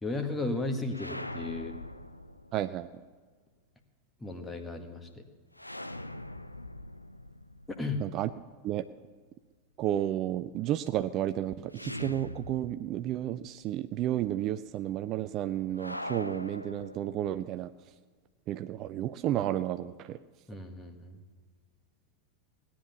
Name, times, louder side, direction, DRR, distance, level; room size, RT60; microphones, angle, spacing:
voice 1, 0.0-1.8 4.2-5.2 7.7-8.0 20.5-21.2, left 2 dB, 10° left, 5 dB, 1.7 m, -35 dB
sound 1, 0.9-2.9 5.6-8.6 11.7-13.1 13.4-13.5 15.7-17.5, left 1 dB, 85° left, 0.5 m, -42 dB
voice 2, 2.5-2.9 8.0-8.3 8.6-8.8 9.8-17.7 18.5-20.2, right 12 dB, 35° right, 12 dB, 0.4 m, -32 dB
18.0 x 10.0 x 7.0 m, 1.4 s
figure-of-eight pair, 90°, 0 cm